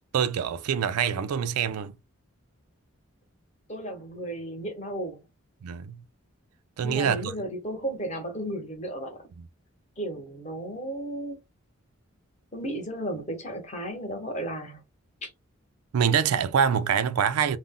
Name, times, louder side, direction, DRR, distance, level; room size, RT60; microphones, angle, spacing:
voice 1, 0.1-2.0 5.6-6.0 6.8-7.4 9.4-9.5 15.9-17.6, right 7 dB, 90° right, 0.4 m, -25 dB
voice 2, 3.7-5.2 6.8-9.2 10.0-11.4 12.5-14.8 15.2-15.3, right 1 dB, 30° left, 0.9 m, -34 dB
2.5 x 2.0 x 3.6 m
head